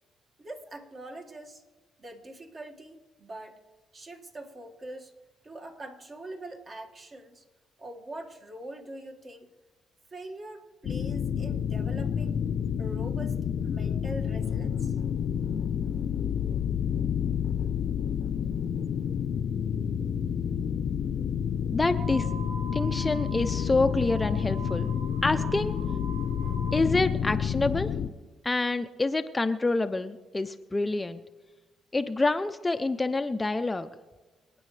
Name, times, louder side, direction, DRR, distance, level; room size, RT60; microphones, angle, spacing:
voice 1, 0.4-1.6 2.0-3.6 3.9-5.1 5.4-7.4 7.8-9.5 10.1-12.4 12.8-15.0, right 1 dB, 40° right, 1 dB, 1.9 m, -43 dB
sound 1, 10.8-28.1, left 8 dB, 65° left, 0.7 m, -29 dB
voice 2, 21.7-22.3 22.7-24.9 25.2-25.8 26.7-27.9 28.4-31.2 31.9-33.9, left 2 dB, 20° left, 9 dB, 0.6 m, -27 dB
sound 2, 21.9-26.9, right 3 dB, 75° right, 1.9 m, -43 dB
27.0 x 9.2 x 3.3 m, 1.3 s
cardioid pair, 90°, 0 cm